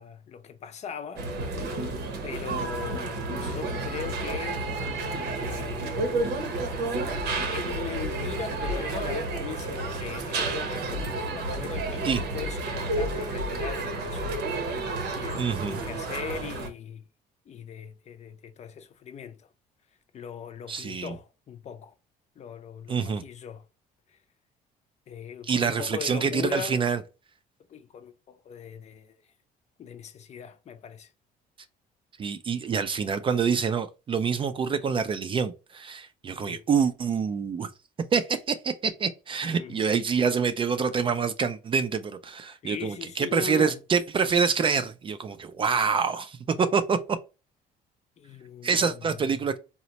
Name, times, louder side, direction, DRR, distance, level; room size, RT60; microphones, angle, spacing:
voice 1, 0.0-1.3 2.2-4.7 5.3-6.4 7.5-14.4 14.8-17.0 17.5-19.5 20.1-21.9 22.4-23.6 24.1-24.2 25.1-26.8 27.7-29.2 29.8-31.1 36.4-36.6 39.4-39.8 42.6-43.8 48.2-49.5, left 7 dB, 40° left, 0.5 m, -40 dB
sound 1, 1.2-16.7, right 2 dB, 85° right, 0.8 m, -31 dB
voice 2, 15.4-15.8 20.7-21.1 22.9-23.2 25.5-27.0 32.2-37.7 38.1-47.0 48.6-49.6, right 6 dB, 30° right, 0.3 m, -26 dB
4.0 x 2.1 x 2.8 m
cardioid pair, 110°, 17 cm